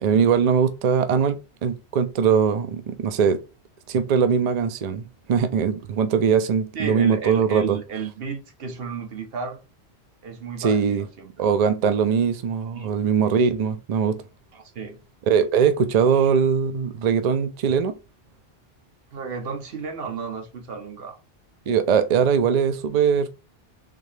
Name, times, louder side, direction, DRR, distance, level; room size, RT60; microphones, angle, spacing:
voice 1, 0.0-1.4 1.6-3.4 3.9-7.8 10.6-11.0 11.4-14.2 15.3-17.9 21.7-23.3, right 6 dB, 50° right, 0.5 m, -21 dB
voice 2, 6.7-9.6 10.2-11.4 12.7-12.9 14.5-15.0 15.9-16.3 19.1-21.2 22.3-22.4, right 5 dB, 70° right, 1.0 m, -33 dB
3.7 x 2.8 x 3.2 m
omnidirectional pair, 1.1 m